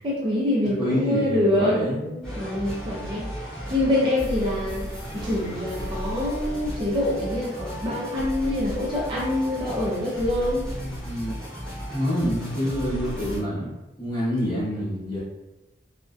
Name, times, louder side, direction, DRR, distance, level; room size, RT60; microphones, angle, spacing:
voice 1, 0.0-3.2 3.7-4.8 5.1-10.7, left 1 dB, 30° right, -6 dB, 0.5 m, -25 dB
voice 2, 0.8-2.1 10.7-11.3 11.9-15.2, equal, 20° left, -9 dB, 1.1 m, -27 dB
sound 1, 2.2-13.4, equal, 5° left, 0.8 m, -34 dB
2.5 x 2.1 x 2.3 m, 0.98 s
head